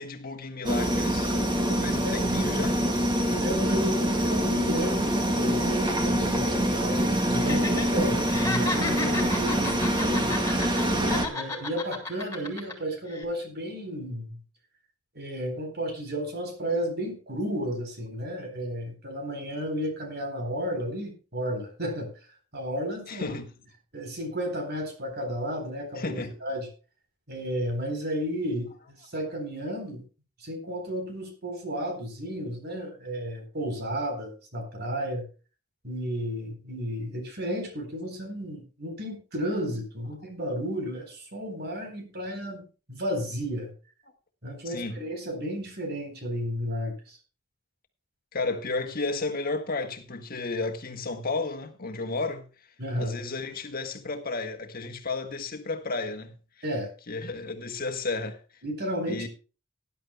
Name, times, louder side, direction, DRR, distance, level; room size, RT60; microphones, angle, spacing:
voice 1, 0.0-1.4 1.8-2.8 23.1-23.5 26.0-26.3 44.6-45.0 48.3-52.4 53.0-56.3 57.1-58.4 59.1-59.3, left 3 dB, 45° left, 1.6 m, -32 dB
sound 1, 0.6-11.3, equal, 25° right, 2.0 m, -25 dB
voice 2, 3.4-10.3 10.9-14.4 15.1-22.1 22.5-23.4 23.9-26.7 27.3-30.0 30.4-35.3 35.8-43.7 44.4-47.2 52.8-53.2 56.6-56.9 58.6-59.3, equal, 50° right, 4.0 m, -33 dB
Laughter, 7.3-7.9 8.2-10.8 11.1-12.7 13.1-13.2, left 2 dB, 15° left, 3.1 m, -33 dB
19.0 x 11.0 x 2.3 m
head